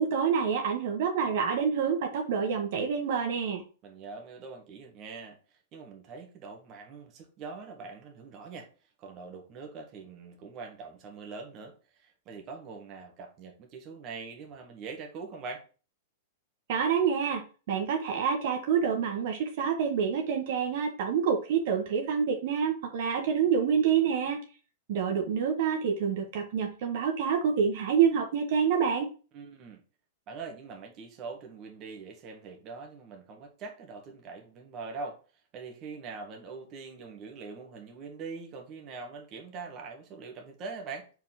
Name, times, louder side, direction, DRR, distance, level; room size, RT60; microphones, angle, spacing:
voice 1, 0.0-3.6 16.7-24.4 24.9-29.1, right 7 dB, 55° right, 1.5 m, -27 dB
voice 2, 3.8-8.7 9.0-15.7 29.3-29.8 30.3-35.2 35.5-41.1, right 4 dB, 30° right, 1.7 m, -43 dB
4.8 x 4.5 x 5.8 m
supercardioid pair, 155°, 0 cm